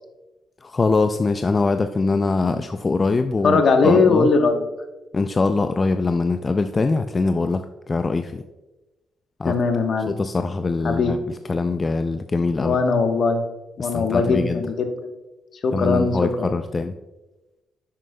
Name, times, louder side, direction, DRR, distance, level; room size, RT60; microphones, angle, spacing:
voice 1, 0.6-4.3 5.1-8.4 9.4-9.5 10.1-12.8 13.8-14.6 15.7-16.9, left 3 dB, 30° left, 8 dB, 0.3 m, -23 dB
voice 2, 3.4-4.6 9.4-10.1 10.8-11.1 12.6-13.4 13.8-14.9 15.6-16.5, left 4 dB, 55° left, 5 dB, 1.1 m, -20 dB
10.0 x 7.5 x 2.2 m, 1.1 s
cardioid pair, 90°, 0 cm